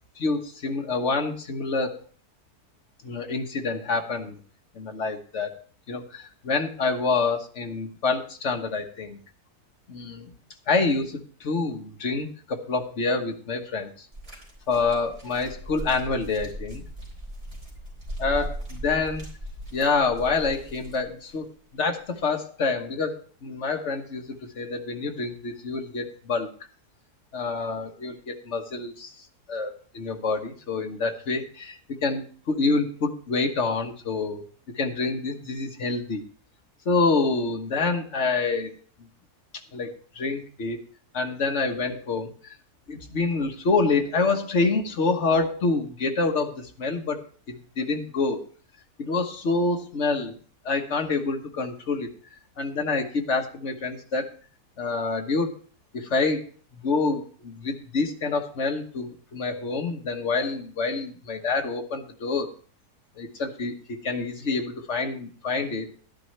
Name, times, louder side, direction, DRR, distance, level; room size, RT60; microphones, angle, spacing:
voice 1, 0.2-2.0 3.0-4.4 4.7-5.6 5.9-9.2 9.9-10.3 10.7-13.9 14.7-16.8 18.2-19.2 19.7-21.5 21.7-26.5 27.3-34.4 34.7-36.2 36.8-38.7 39.7-40.8 41.1-42.6 42.9-48.4 49.0-50.4 50.6-52.1 52.6-54.3 54.8-55.6 55.9-62.5 63.2-65.9, left 3 dB, 50° left, 4 dB, 1.4 m, -27 dB
sound 1, 14.1-21.4 22.2-22.3, right 1 dB, 35° right, 4.0 m, -38 dB
12.5 x 10.5 x 3.2 m, 0.43 s
omnidirectional pair, 1.7 m